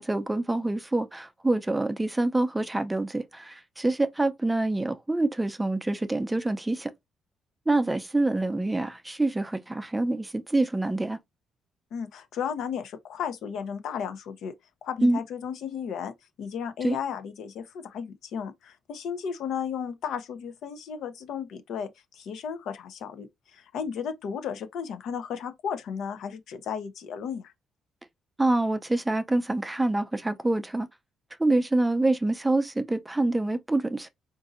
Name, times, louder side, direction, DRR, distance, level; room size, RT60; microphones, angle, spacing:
voice 1, 0.0-6.9 7.7-11.2 15.0-15.2 16.8-17.0 28.4-30.9 31.4-34.1, right 2 dB, 10° right, 0.5 m, -26 dB
voice 2, 11.9-14.5 14.8-16.1 16.4-27.5, left 7 dB, 75° left, 0.6 m, -34 dB
3.9 x 2.6 x 2.5 m
cardioid pair, 90°, 0 cm